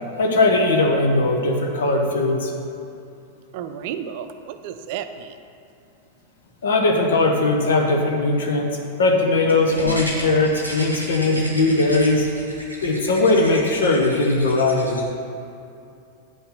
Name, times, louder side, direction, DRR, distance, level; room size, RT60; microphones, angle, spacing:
voice 1, 0.2-2.5 6.6-12.3 12.8-15.0, left 2 dB, 60° left, 2 dB, 1.3 m, -19 dB
voice 2, 3.5-5.4, right 9 dB, 50° right, 9 dB, 0.5 m, -32 dB
sound 1, 9.5-15.0, equal, 90° left, 1.4 m, -34 dB
9.4 x 5.7 x 5.7 m, 2.6 s
figure-of-eight pair, 90°, 0 cm